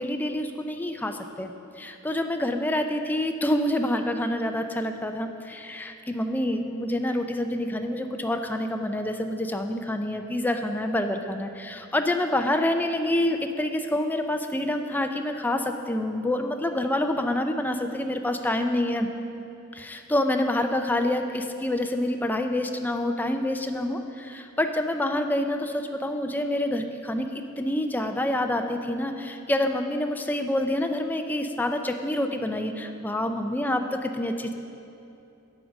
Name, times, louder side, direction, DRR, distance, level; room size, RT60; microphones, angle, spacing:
voice 1, 0.0-1.5 1.8-19.1 19.7-34.5, left 1 dB, 10° left, 5 dB, 0.3 m, -27 dB
8.7 x 4.7 x 6.3 m, 2.8 s
head